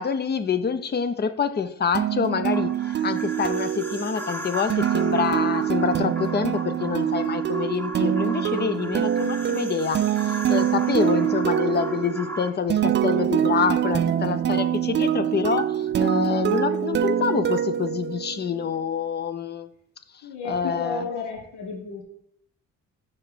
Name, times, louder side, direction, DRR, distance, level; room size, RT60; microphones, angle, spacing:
voice 1, 0.0-19.7 20.5-21.0, left 6 dB, 35° left, 11 dB, 0.6 m, -26 dB
sound 1, 1.9-18.6, right 10 dB, 40° right, 0.4 m, -25 dB
sound 2, 2.5-12.5, right 1 dB, 5° left, 1.0 m, -37 dB
voice 2, 20.2-22.0, left 4 dB, 75° left, 1 dB, 1.4 m, -33 dB
5.6 x 4.7 x 4.9 m, 0.70 s
cardioid pair, 90°, 30 cm